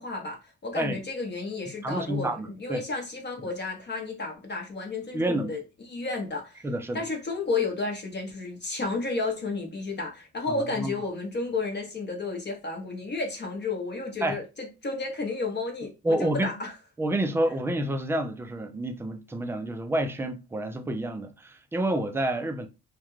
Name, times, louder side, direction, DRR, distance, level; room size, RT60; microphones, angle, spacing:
voice 1, 0.0-5.6 5.9-6.7 6.9-16.7, left 3 dB, 35° left, 0.7 m, -32 dB
voice 2, 1.8-2.8 5.1-5.5 6.6-7.0 10.5-10.9 14.2-14.4 16.0-16.5 17.0-22.7, right 1 dB, 10° right, 0.3 m, -29 dB
2.3 x 2.2 x 3.0 m
cardioid pair, 90°, 30 cm